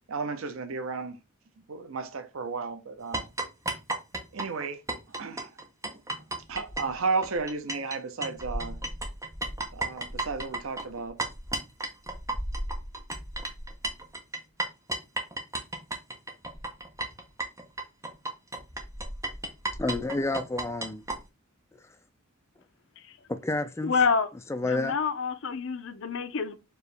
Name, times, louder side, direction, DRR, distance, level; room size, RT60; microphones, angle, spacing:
voice 1, 0.1-1.2 1.7-3.3 4.3-4.8 5.1-5.5 5.8-6.0 6.5-8.8 9.7-11.2, right 4 dB, 70° right, 0.6 m, -33 dB
sound 1, 3.1-8.0 8.2-21.2, right 2 dB, 15° right, 0.7 m, -33 dB
voice 2, 19.8-21.0 23.3-23.9 24.5-24.9, left 2 dB, 15° left, 0.3 m, -29 dB
voice 3, 23.8-24.3 24.7-26.6, left 5 dB, 60° left, 0.5 m, -27 dB
4.5 x 2.9 x 3.3 m
head